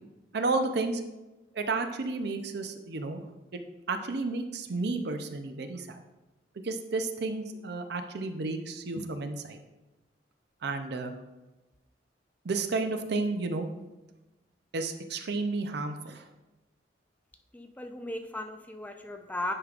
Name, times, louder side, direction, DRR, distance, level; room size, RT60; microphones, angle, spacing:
voice 1, 0.3-1.0 1.5-3.2 3.9-6.0 6.6-9.6 10.6-11.1 12.4-13.7 14.7-16.3, right 3 dB, 65° right, 7 dB, 0.6 m, -32 dB
voice 2, 17.5-19.5, left 1 dB, 10° left, 5 dB, 0.4 m, -36 dB
9.8 x 5.1 x 2.4 m, 1.1 s
head